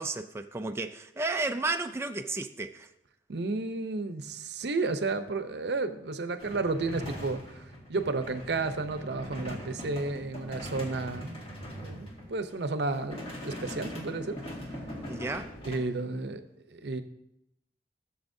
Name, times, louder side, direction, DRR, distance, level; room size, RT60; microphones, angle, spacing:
voice 1, 0.0-2.9 15.1-15.5, right 3 dB, 15° right, 0.3 m, -33 dB
voice 2, 3.3-7.6 7.9-11.4 11.8-14.4 15.6-16.4 16.7-17.0, right 3 dB, 70° right, 0.7 m, -32 dB
sound 1, 6.4-12.5 12.9-15.8, equal, 35° left, 1.9 m, -41 dB
16.0 x 7.0 x 2.7 m
head